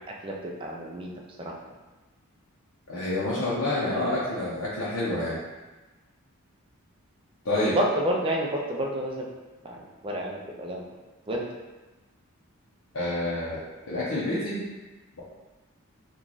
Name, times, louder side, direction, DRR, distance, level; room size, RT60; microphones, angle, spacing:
voice 1, 0.6-1.1 1.4-1.5 4.0-4.2 7.6-9.3 9.6-10.8 11.3-11.4, right 1 dB, 25° right, -1 dB, 0.3 m, -29 dB
voice 2, 2.9-5.4 7.4-7.8 12.9-13.6 13.9-14.7, left 2 dB, 70° left, -9 dB, 0.7 m, -28 dB
3.0 x 2.4 x 3.8 m, 1.2 s
head